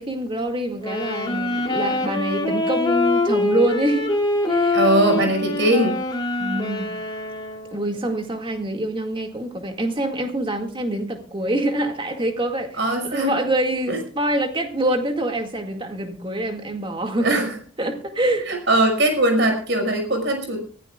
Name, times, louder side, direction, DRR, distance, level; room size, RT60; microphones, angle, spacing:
voice 1, 0.0-4.2 4.5-5.3 6.4-6.9 7.7-17.5 17.8-18.5, right 1 dB, 25° right, 4 dB, 2.1 m, -25 dB
sound 1, 0.8-7.9, left 2 dB, 20° left, 2.6 m, -24 dB
voice 2, 4.7-6.0 12.8-13.3 13.9-14.0 17.2-17.5 18.5-20.6, right 1 dB, 55° right, 4 dB, 5.6 m, -20 dB
23.5 x 15.5 x 2.4 m, 0.41 s
head